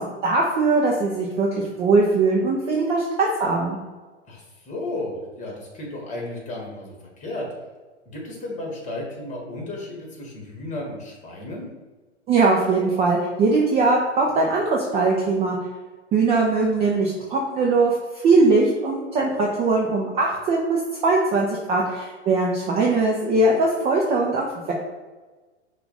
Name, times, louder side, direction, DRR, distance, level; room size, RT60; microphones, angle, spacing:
voice 1, 0.0-3.8 12.3-15.6 16.1-24.7, right 3 dB, 20° right, -2 dB, 0.5 m, -21 dB
voice 2, 4.2-7.5 8.0-11.7, left 2 dB, 20° left, -1 dB, 1.5 m, -34 dB
5.5 x 2.4 x 4.0 m, 1.3 s
hypercardioid pair, 115°, 35 cm